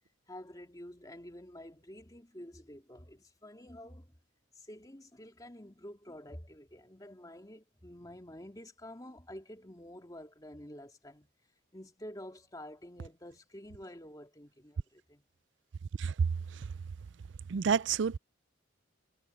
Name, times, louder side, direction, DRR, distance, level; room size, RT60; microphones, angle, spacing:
voice 1, 0.3-4.2 4.5-11.3 11.7-15.2, left 1 dB, 20° left, 2.6 m, -49 dB
voice 2, 17.5-18.2, right 6 dB, 65° right, 0.4 m, -29 dB
head